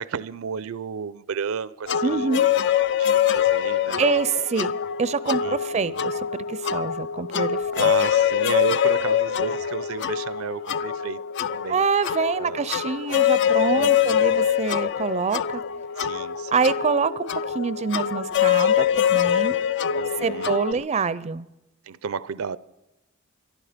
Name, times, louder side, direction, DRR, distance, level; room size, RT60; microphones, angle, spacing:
voice 1, 0.0-2.3 3.0-4.2 5.4-6.1 7.8-11.2 11.5-11.8 12.4-12.6 13.7-14.5 16.0-16.5 19.9-20.9 21.8-22.6, right 6 dB, 85° right, 0.5 m, -32 dB
sound 1, 1.9-20.7, left 9 dB, 60° left, 0.5 m, -24 dB
voice 2, 2.0-2.5 4.0-7.7 11.7-15.6 16.5-19.6 20.2-21.5, right 5 dB, 30° right, 0.4 m, -26 dB
24.0 x 11.5 x 5.1 m
head